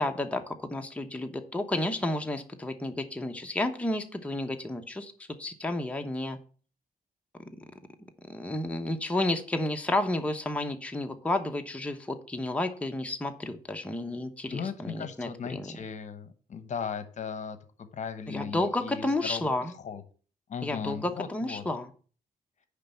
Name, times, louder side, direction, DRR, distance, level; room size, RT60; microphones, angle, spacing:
voice 1, 0.0-5.1 5.4-6.4 8.3-15.7 18.3-19.7 20.6-21.9, left 1 dB, 10° left, 4 dB, 1.0 m, -31 dB
voice 2, 14.5-17.6 17.9-20.0 20.5-21.6, left 6 dB, 55° left, 10 dB, 1.0 m, -37 dB
9.9 x 3.4 x 7.0 m, 0.41 s
cardioid pair, 90°, 15 cm